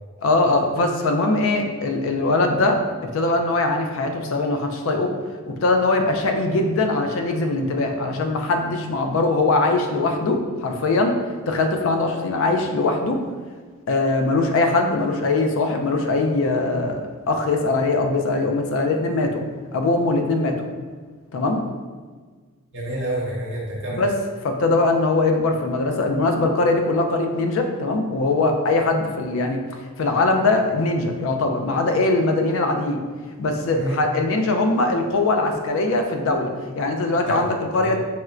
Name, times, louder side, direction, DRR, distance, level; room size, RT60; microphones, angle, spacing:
voice 1, 0.2-5.1 5.5-11.2 11.5-13.2 13.9-19.4 19.7-20.5 21.3-21.6 23.9-24.1 24.4-29.6 30.0-33.0 33.4-36.5 36.8-38.0, left 2 dB, 60° left, 4 dB, 0.3 m, -21 dB
voice 2, 22.7-24.0 33.7-34.0 37.2-37.4 37.7-38.0, right 1 dB, 55° right, -5 dB, 0.8 m, -28 dB
4.2 x 2.1 x 2.4 m, 1.5 s
head